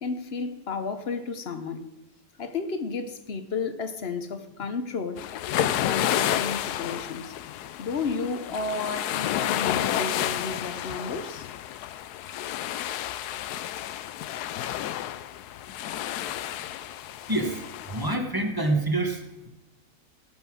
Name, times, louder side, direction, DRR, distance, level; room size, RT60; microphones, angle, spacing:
voice 1, 0.0-1.9 2.4-5.2 5.6-7.3 7.8-11.5, left 4 dB, 50° left, 1.0 m, -32 dB
sound 1, 5.2-18.2, left 12 dB, 90° left, 1.1 m, -31 dB
voice 2, 17.3-19.5, right 2 dB, 15° right, 1.4 m, -27 dB
16.5 x 5.6 x 6.3 m
omnidirectional pair, 1.6 m